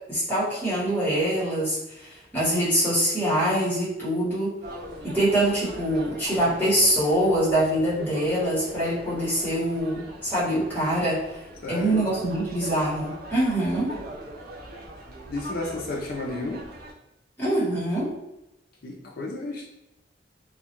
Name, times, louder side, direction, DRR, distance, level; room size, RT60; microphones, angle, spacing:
voice 1, 0.1-4.5 5.0-11.2 11.7-14.0 17.4-18.1, right 1 dB, 10° left, -10 dB, 1.0 m, -24 dB
sound 1, 4.6-16.9, right 1 dB, 55° right, 0.4 m, -41 dB
voice 2, 11.6-12.1 15.3-16.7 18.8-19.7, left 2 dB, 55° left, -3 dB, 0.4 m, -32 dB
2.3 x 2.1 x 2.8 m, 0.91 s
head